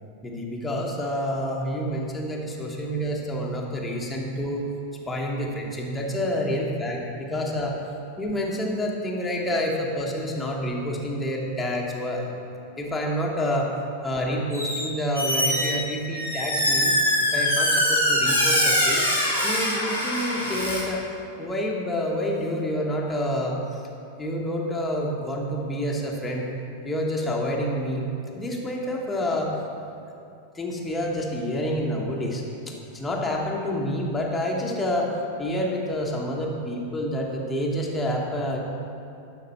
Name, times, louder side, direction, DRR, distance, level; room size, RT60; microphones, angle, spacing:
voice 1, 0.2-4.7 5.1-7.8 8.2-12.4 12.8-13.7 14.0-19.0 19.4-21.1 21.4-23.8 24.2-26.5 26.8-28.1 28.3-29.6 30.5-35.1 35.4-38.6, equal, 10° left, -2 dB, 1.2 m, -28 dB
Squeak, 14.5-14.8 15.1-20.8, equal, 85° right, 2.2 m, -23 dB
11.5 x 5.2 x 4.3 m, 2.7 s
figure-of-eight pair, 90°, 0 cm